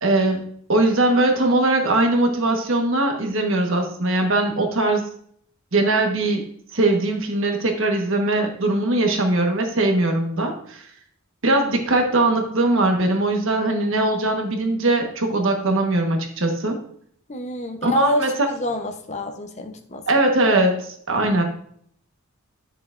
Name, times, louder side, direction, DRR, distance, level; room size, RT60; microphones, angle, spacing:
voice 1, 0.0-5.0 5.7-6.5 6.7-10.8 11.4-16.8 17.8-18.3 20.1-21.4, right 2 dB, 65° right, 3 dB, 1.3 m, -20 dB
voice 2, 17.3-20.0, left 1 dB, 35° left, 5 dB, 0.8 m, -28 dB
10.5 x 6.7 x 2.5 m, 0.64 s
head